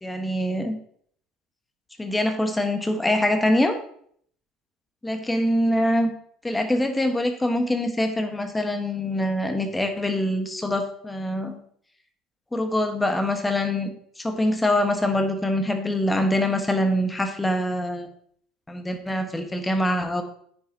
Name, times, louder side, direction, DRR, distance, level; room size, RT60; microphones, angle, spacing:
voice 1, 0.0-0.8 2.0-3.8 5.0-6.1 6.4-11.6 12.5-13.9 14.2-18.1 18.7-20.2, left 1 dB, 10° left, 6 dB, 1.3 m, -24 dB
9.5 x 7.1 x 2.8 m, 0.62 s
figure-of-eight pair, 65°, 0 cm